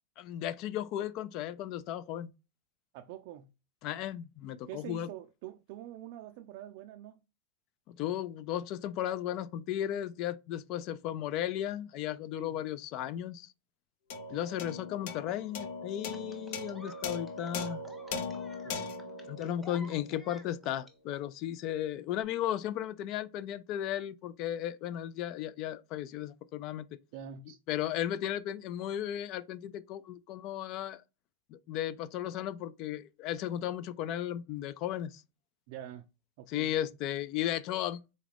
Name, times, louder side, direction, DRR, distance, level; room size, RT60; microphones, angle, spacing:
voice 1, 0.2-2.3 3.8-5.1 7.9-13.5 14.3-17.8 19.3-26.9 27.7-31.0 31.5-35.2 36.5-38.0, left 11 dB, 45° left, 0.3 m, -35 dB
voice 2, 2.9-3.5 4.7-7.2 12.3-12.6 18.6-18.9 27.1-27.6 35.7-36.1 36.4-36.7, right 11 dB, 55° right, 0.3 m, -45 dB
sound 1, 14.1-20.7, left 4 dB, 60° left, 0.7 m, -40 dB
sound 2, 16.1-20.9 22.1-22.2, equal, 5° left, 0.6 m, -53 dB
4.0 x 2.4 x 3.3 m
supercardioid pair, 145°, 0 cm